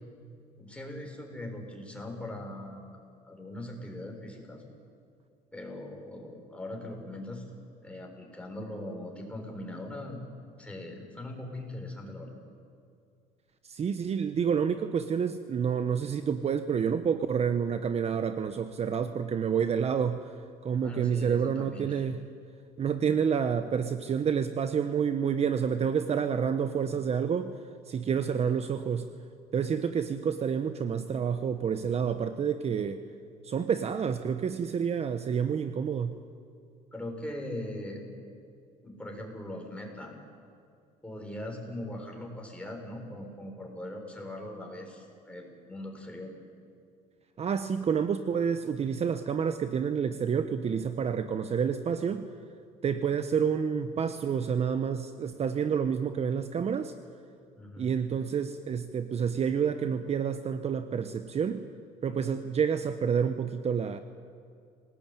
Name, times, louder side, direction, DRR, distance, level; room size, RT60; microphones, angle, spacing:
voice 1, 0.6-2.8 3.2-4.6 5.5-7.4 7.8-10.2 10.6-12.4 20.8-22.0 29.7-29.8 36.9-38.0 38.8-40.1 41.0-46.3 57.6-57.9, left 1 dB, 5° left, 1 dB, 6.9 m, -40 dB
voice 2, 13.6-20.3 20.6-22.2 22.8-27.5 27.9-29.1 29.5-33.0 33.4-36.2 47.4-52.3 52.8-56.9 57.8-61.6 62.0-64.0, right 7 dB, 40° right, 10 dB, 1.2 m, -29 dB
27.5 x 19.0 x 9.2 m, 2.4 s
supercardioid pair, 90°, 16 cm